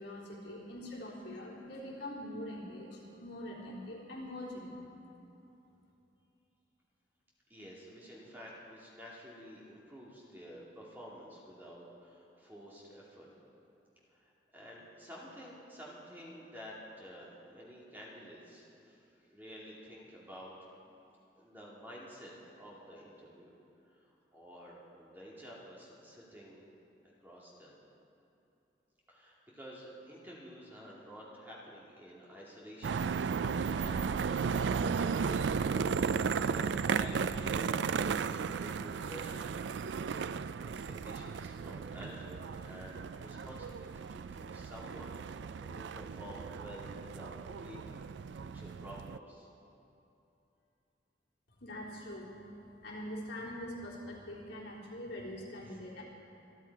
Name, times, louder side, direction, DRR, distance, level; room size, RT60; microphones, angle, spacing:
voice 1, 0.0-5.2 51.6-56.0, left 1 dB, 70° left, -5 dB, 3.7 m, -44 dB
voice 2, 7.5-13.3 14.1-19.0 19.3-20.5 21.4-23.5 23.9-24.0 24.3-26.7 27.2-27.8 29.1-33.1 33.4-34.2 34.5-35.6 36.2-39.5 40.3-49.5 55.6-55.8, equal, 10° right, -5 dB, 2.4 m, -50 dB
sound 1, 32.8-49.2, right 6 dB, 80° right, 0.4 m, -35 dB
26.5 x 10.0 x 4.7 m, 2.9 s
head